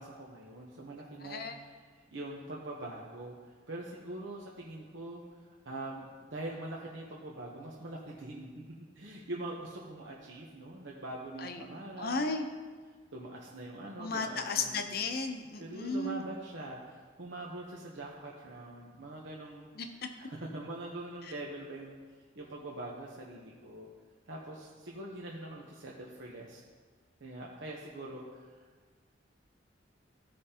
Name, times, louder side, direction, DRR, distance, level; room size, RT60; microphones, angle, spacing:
voice 1, 0.0-8.5 9.0-12.2 13.1-14.8 15.6-19.7 20.2-22.0 22.3-23.9 24.3-26.6 27.2-28.7, right 1 dB, 75° right, -3 dB, 0.9 m, -43 dB
voice 2, 1.2-1.6 11.4-11.6 12.0-12.5 14.0-16.2 19.8-20.1, left 3 dB, 55° left, 6 dB, 0.7 m, -34 dB
14.5 x 5.1 x 2.9 m, 1.5 s
head